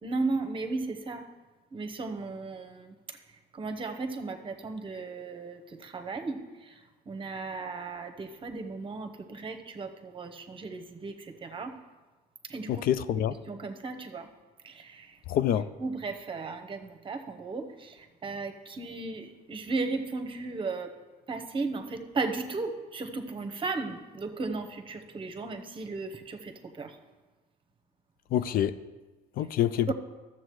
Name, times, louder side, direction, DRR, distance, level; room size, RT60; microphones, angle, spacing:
voice 1, 0.0-1.3 1.7-3.2 3.5-11.8 12.5-12.9 13.5-14.3 14.6-15.2 15.8-20.9 21.3-27.0 29.9-30.0, right 3 dB, 30° right, 0.9 m, -35 dB
voice 2, 12.7-13.3 15.3-15.7 28.3-28.8 29.4-29.9, left 11 dB, 60° left, 0.4 m, -26 dB
12.5 x 7.3 x 3.2 m
cardioid pair, 110°, 17 cm